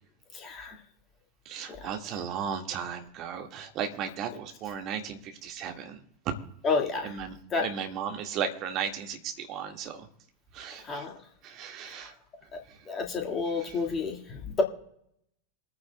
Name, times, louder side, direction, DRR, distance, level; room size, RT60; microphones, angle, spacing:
voice 1, 1.4-6.0 6.2-6.3 7.0-10.0 10.5-11.0 11.4-12.1 13.6-13.8, right 7 dB, 35° right, 4 dB, 1.7 m, -35 dB
voice 2, 6.6-7.0 7.5-7.6 10.9-11.1 12.9-14.2, left 4 dB, 25° left, 1 dB, 1.8 m, -29 dB
28.0 x 9.4 x 2.2 m, 0.72 s
figure-of-eight pair, 90°, 0 cm